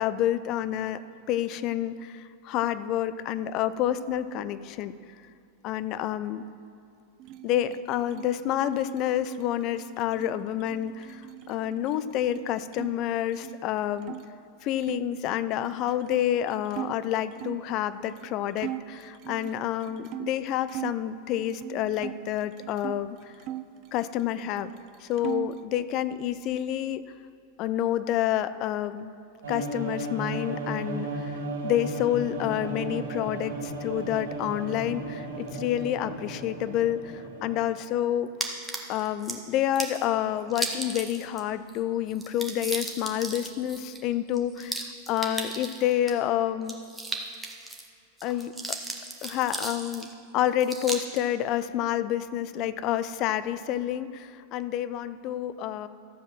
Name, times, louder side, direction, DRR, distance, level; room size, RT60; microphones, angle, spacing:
voice 1, 0.0-5.0 5.6-6.4 7.4-14.2 14.6-23.3 23.9-24.7 25.0-27.0 27.6-29.1 29.5-31.3 31.6-38.3 38.9-46.7 48.2-48.8 49.2-55.9, left 11 dB, 40° left, 13 dB, 0.4 m, -29 dB
sound 1, 7.2-12.9 13.2-14.2 14.8-17.7 18.2-18.3 18.6-21.0 21.4-23.0 23.4-24.5 24.8-25.7, right 13 dB, 40° right, 0.5 m, -40 dB
sound 2, 29.4-37.6, right 2 dB, 65° right, 1.9 m, -35 dB
sound 3, 38.4-39.4 39.8-40.0 40.5-41.4 41.7-41.8 42.1-46.1 46.6-47.9 48.2-50.1 50.6-51.2, right 2 dB, 5° right, 1.3 m, -35 dB
12.5 x 8.0 x 6.0 m, 2.4 s
figure-of-eight pair, 90°, 0 cm